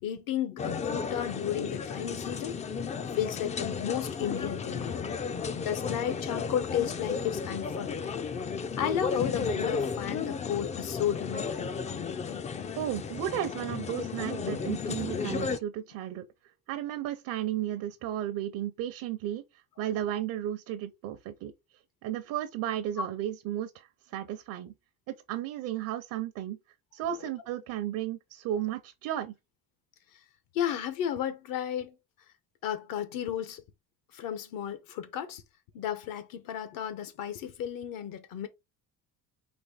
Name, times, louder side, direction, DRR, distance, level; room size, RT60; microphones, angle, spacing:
voice 1, 0.0-2.6 3.1-5.0 5.5-8.2 8.8-11.7 12.2-12.5 23.0-23.1 30.5-32.0 32.6-33.6 34.1-35.4 35.7-38.5, left 9 dB, 70° left, 1.1 m, -33 dB
sound 1, 0.6-15.6, left 5 dB, 20° left, 0.3 m, -34 dB
voice 2, 12.8-16.2 16.7-19.4 19.8-21.5 22.0-23.9 24.1-24.7 25.1-26.6 26.9-29.3, right 11 dB, 70° right, 0.7 m, -34 dB
4.4 x 2.9 x 4.0 m
cardioid pair, 125°, 34 cm